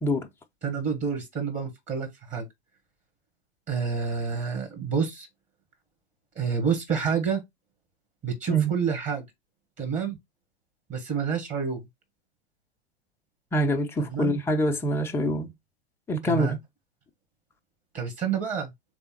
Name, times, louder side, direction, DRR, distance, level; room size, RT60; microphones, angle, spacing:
voice 1, 0.6-2.4 3.7-5.3 6.3-7.4 8.2-9.2 9.8-10.2 10.9-11.8 14.0-14.3 16.3-16.5 17.9-18.7, right 6 dB, 25° right, 1.5 m, -28 dB
voice 2, 13.5-15.5 16.1-16.6, right 1 dB, 10° left, 0.5 m, -25 dB
3.6 x 3.3 x 4.3 m
figure-of-eight pair, 95°, 30 cm